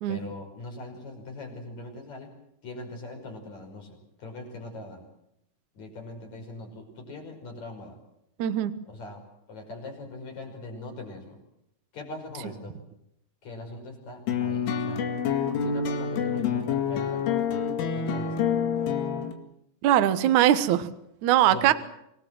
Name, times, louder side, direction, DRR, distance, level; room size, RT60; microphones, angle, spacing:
voice 1, 0.1-2.3 2.6-5.1 5.7-8.0 8.8-9.2 9.5-11.4 11.9-12.8 13.4-15.1 15.6-17.6 17.9-18.5 21.5-21.7, left 2 dB, 40° left, 3 dB, 6.5 m, -41 dB
voice 2, 8.4-8.7 19.8-20.9 21.2-21.7, right 12 dB, 75° right, 11 dB, 1.7 m, -21 dB
sound 1, 14.3-19.3, left 7 dB, 90° left, 4.7 m, -27 dB
26.5 x 19.5 x 7.7 m, 0.78 s
omnidirectional pair, 5.4 m